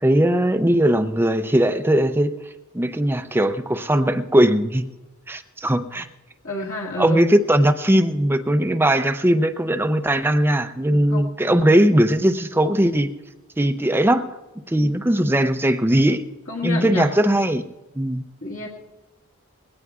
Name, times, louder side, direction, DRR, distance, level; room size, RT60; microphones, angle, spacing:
voice 1, 0.0-2.4 2.7-4.8 5.3-6.1 7.0-13.1 13.6-14.2 14.7-16.3 16.6-17.6 18.0-18.2, right 1 dB, 10° right, 9 dB, 0.5 m, -19 dB
voice 2, 6.4-7.2 10.9-11.2 16.5-17.1 18.4-18.7, left 2 dB, 60° left, -4 dB, 1.9 m, -29 dB
20.5 x 17.5 x 2.4 m, 1.1 s
head